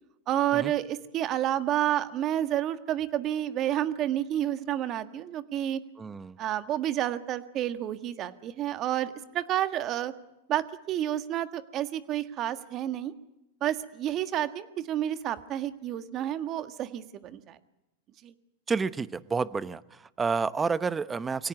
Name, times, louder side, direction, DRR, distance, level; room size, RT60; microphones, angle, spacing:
voice 1, 0.3-5.8 6.4-10.1 10.5-13.1 13.6-17.6 18.2-18.3, right 12 dB, 35° right, 11 dB, 1.6 m, -30 dB
voice 2, 6.0-6.4 18.7-21.5, right 5 dB, 15° right, 16 dB, 0.9 m, -30 dB
24.0 x 17.5 x 9.5 m, 0.95 s
hypercardioid pair, 115°, 0 cm